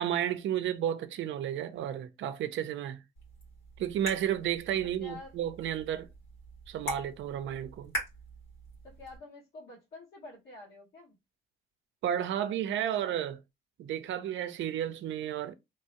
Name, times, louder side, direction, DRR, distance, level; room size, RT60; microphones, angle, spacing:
voice 1, 0.0-3.0 3.8-6.1 6.7-7.9 12.0-13.4 13.8-15.5, right 10 dB, 75° right, 0.5 m, -32 dB
sound 1, 3.2-9.2, equal, 85° left, 1.6 m, -42 dB
voice 2, 4.8-5.3 8.8-11.2, left 3 dB, 70° left, 1.8 m, -48 dB
3.1 x 2.2 x 2.8 m
cardioid pair, 90°, 20 cm